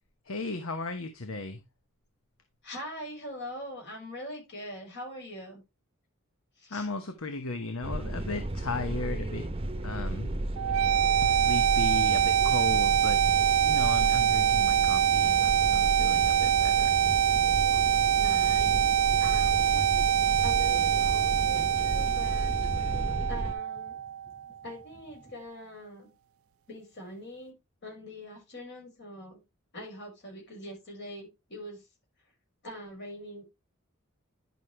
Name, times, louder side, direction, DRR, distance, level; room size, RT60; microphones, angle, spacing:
voice 1, 0.2-1.6 6.7-9.5 9.8-10.3 11.2-13.2 13.5-16.9, left 3 dB, 70° left, 1.1 m, -36 dB
voice 2, 2.6-5.6 6.6-6.9 18.1-18.9 19.2-22.9 23.3-24.0 24.6-26.1 26.7-27.5 27.8-29.4 29.7-31.9 32.6-33.4, left 1 dB, 55° left, 6.0 m, -43 dB
sound 1, 7.8-23.5, right 1 dB, 25° right, 0.9 m, -33 dB
sound 2, 10.6-24.5, right 10 dB, 75° right, 0.4 m, -25 dB
sound 3, 23.1-25.5, equal, 25° left, 6.7 m, -57 dB
10.5 x 6.3 x 3.2 m
head